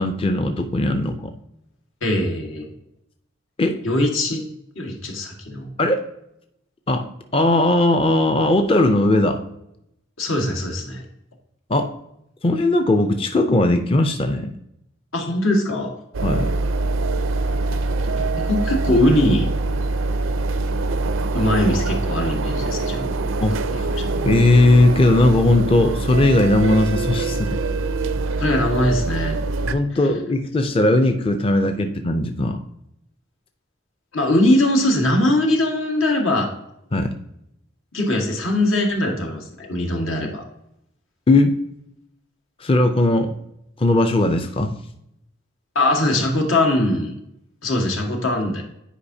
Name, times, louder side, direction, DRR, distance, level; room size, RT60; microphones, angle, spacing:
voice 1, 0.0-1.3 3.6-3.8 5.8-6.0 6.9-7.1 7.3-9.4 11.7-11.9 12.4-14.5 16.2-16.5 23.4-23.9 24.2-27.6 29.7-32.6 36.9-37.1 41.3-41.6 42.6-43.4 43.8-44.7, left 2 dB, 30° left, 6 dB, 0.4 m, -18 dB
voice 2, 2.0-2.7 3.8-4.4 4.7-5.7 10.2-11.0 15.1-15.9 18.1-19.5 21.3-23.3 23.7-24.0 28.4-29.4 34.1-36.5 37.9-40.4 45.7-47.1 47.6-48.6, left 1 dB, 85° left, 2 dB, 1.5 m, -21 dB
sound 1, 16.1-29.7, right 3 dB, 90° right, 0.5 m, -24 dB
10.0 x 4.9 x 2.7 m, 0.81 s
head